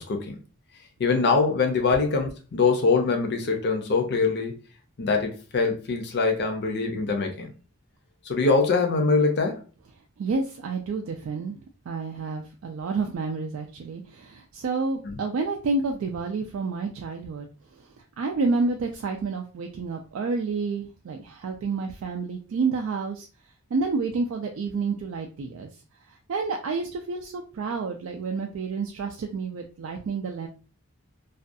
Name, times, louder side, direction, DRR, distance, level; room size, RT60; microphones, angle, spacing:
voice 1, 0.1-0.4 1.0-4.5 5.0-7.5 8.3-9.6 15.0-15.2, left 4 dB, 50° left, 0.5 m, -23 dB
voice 2, 10.2-17.5 17.8-17.9 18.2-23.3 23.7-25.7 26.1-30.5, right 4 dB, 60° right, 0.3 m, -29 dB
2.4 x 2.2 x 2.5 m
head